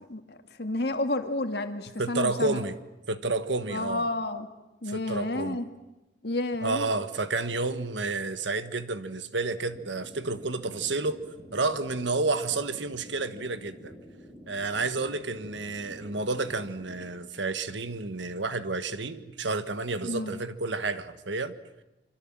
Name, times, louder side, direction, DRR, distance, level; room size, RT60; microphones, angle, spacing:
voice 1, 0.1-2.6 3.7-4.5 4.8-5.7 6.2-6.9 20.0-20.4, left 2 dB, 60° left, 2.0 m, -31 dB
voice 2, 2.0-2.7 3.1-4.1 4.9-5.6 6.6-11.2 11.5-13.9 14.5-21.5, right 3 dB, 80° right, 1.4 m, -30 dB
sound 1, 9.7-17.1, equal, 25° right, 5.3 m, -49 dB
26.0 x 25.5 x 7.5 m
head